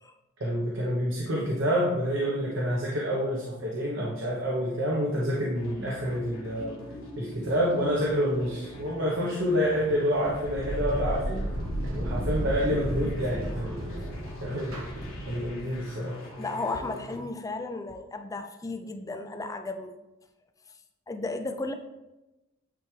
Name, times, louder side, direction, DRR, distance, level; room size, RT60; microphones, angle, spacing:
voice 1, 0.4-6.8 7.2-11.5 11.9-13.9 14.4-14.8 15.3-16.2, equal, 60° right, -4 dB, 1.0 m, -28 dB
sound 1, 5.5-17.2, left 1 dB, 70° left, 1.7 m, -43 dB
sound 2, 10.2-15.8, right 1 dB, 80° right, 1.3 m, -33 dB
voice 2, 16.4-19.9 21.1-21.7, left 3 dB, 15° left, 6 dB, 0.4 m, -34 dB
9.2 x 3.4 x 3.2 m, 0.99 s
head